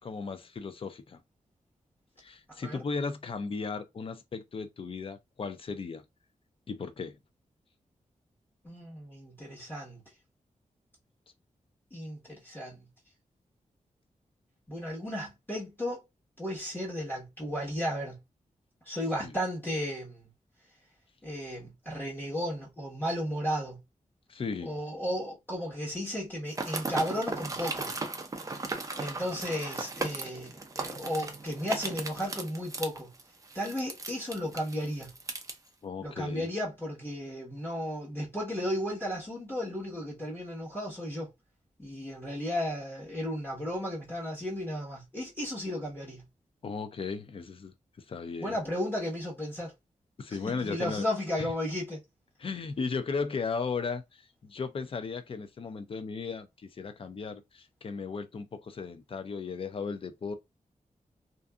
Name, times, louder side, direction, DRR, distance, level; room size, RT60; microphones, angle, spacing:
voice 1, 0.0-1.2 2.2-6.0 6.7-7.2 19.2-19.3 24.3-24.8 35.8-36.5 46.6-47.7 48.1-48.6 50.2-51.0 51.4-51.5 52.4-60.3, left 4 dB, 45° left, 0.4 m, -36 dB
voice 2, 2.5-2.8 8.6-10.0 11.9-12.9 14.7-16.0 16.4-18.2 18.8-20.3 21.2-23.8 24.6-27.9 29.0-33.1 33.5-35.1 36.0-41.3 41.8-46.2 48.4-49.7 50.3-52.0, equal, 15° left, 1.2 m, -34 dB
sound 1, 26.5-35.5, right 3 dB, 25° right, 0.5 m, -36 dB
2.6 x 2.5 x 2.3 m
wide cardioid pair, 135°, 14 cm